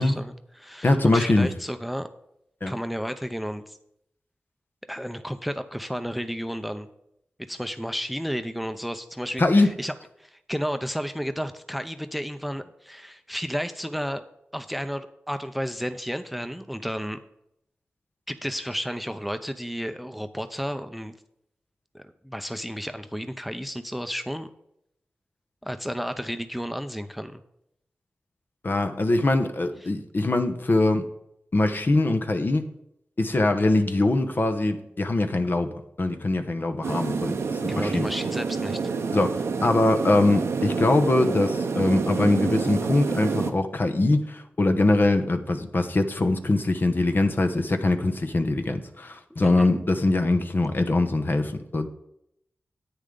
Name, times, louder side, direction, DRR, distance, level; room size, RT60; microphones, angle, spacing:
voice 1, 0.0-2.1 2.7-3.8 4.9-6.9 7.5-14.2 14.5-17.2 18.3-21.1 21.9-24.5 25.6-27.4 29.8-29.9 37.7-38.9 49.4-49.7, equal, ahead, 9 dB, 0.7 m, -32 dB
voice 2, 0.8-1.5 2.6-2.7 9.4-9.7 28.6-31.1 31.5-32.7 33.2-38.1 39.1-51.9, left 2 dB, 50° left, 7 dB, 1.0 m, -23 dB
sound 1, 36.8-43.5, right 4 dB, 90° right, 0.8 m, -28 dB
10.0 x 8.9 x 3.9 m, 0.77 s
cardioid pair, 55°, 4 cm